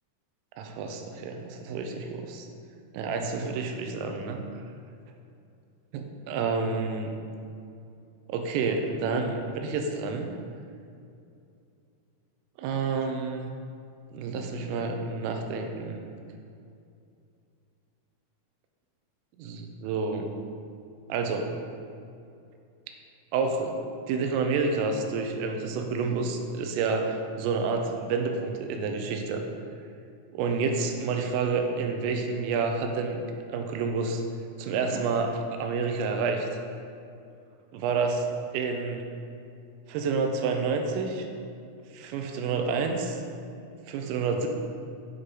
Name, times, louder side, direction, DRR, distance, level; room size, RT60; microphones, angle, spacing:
voice 1, 0.6-2.5 2.9-4.4 5.9-7.2 8.3-10.3 12.6-13.5 14.1-16.0 19.4-20.3 21.1-21.5 23.3-23.8 24.1-29.4 30.3-33.2 33.5-34.2 34.6-36.5 37.7-38.3 38.5-39.0 39.9-41.3 41.9-43.2 43.9-44.5, right 4 dB, 85° right, 4 dB, 3.2 m, -29 dB
9.5 x 4.1 x 4.8 m, 2.5 s
omnidirectional pair, 5.8 m